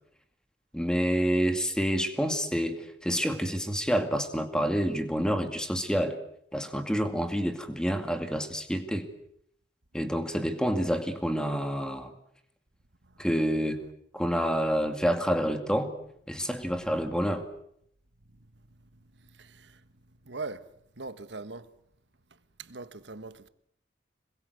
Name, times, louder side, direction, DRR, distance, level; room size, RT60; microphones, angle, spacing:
voice 1, 0.7-6.2 6.5-9.1 9.9-12.1 13.2-13.8 14.1-15.9 16.3-17.5, equal, 5° left, 2.2 m, -28 dB
voice 2, 19.2-19.8 20.2-20.7 21.0-21.7 22.6-23.5, right 3 dB, 80° right, 1.5 m, -41 dB
26.5 x 22.0 x 8.1 m
head